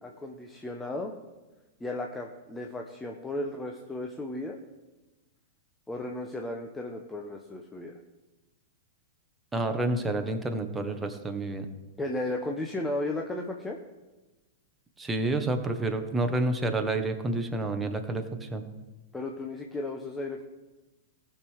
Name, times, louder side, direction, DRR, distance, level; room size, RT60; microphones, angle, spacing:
voice 1, 0.0-1.1 1.8-4.6 5.9-8.0 12.0-13.8 19.1-20.4, left 2 dB, 10° left, 2 dB, 1.0 m, -34 dB
voice 2, 9.5-11.7 15.0-18.2 18.5-18.6, right 2 dB, 10° right, 5 dB, 1.4 m, -29 dB
19.0 x 6.6 x 3.6 m, 1.1 s
figure-of-eight pair, 100°, 0 cm